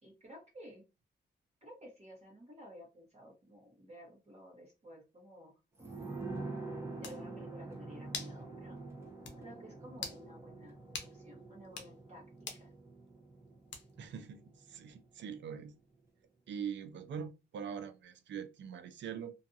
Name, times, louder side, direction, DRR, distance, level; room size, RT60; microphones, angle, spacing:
voice 1, 0.0-0.8 1.6-5.6 6.6-8.8 9.4-10.8 11.1-12.2 12.6-12.7, equal, 35° right, 1.1 m, -54 dB
sound 1, 5.8-15.1 15.4-15.5, right 3 dB, 15° right, 0.8 m, -46 dB
sound 2, 6.6-6.7 7.0-7.2 8.1-8.4 8.8-8.9 9.2-9.4 9.9-10.2 10.9-11.1 11.6-11.9 12.5-12.7 13.7-14.1, left 5 dB, 75° left, 0.6 m, -43 dB
voice 2, 14.0-15.7 16.5-19.3, right 7 dB, 80° right, 0.4 m, -43 dB
2.6 x 2.4 x 2.6 m
wide cardioid pair, 125°, 19 cm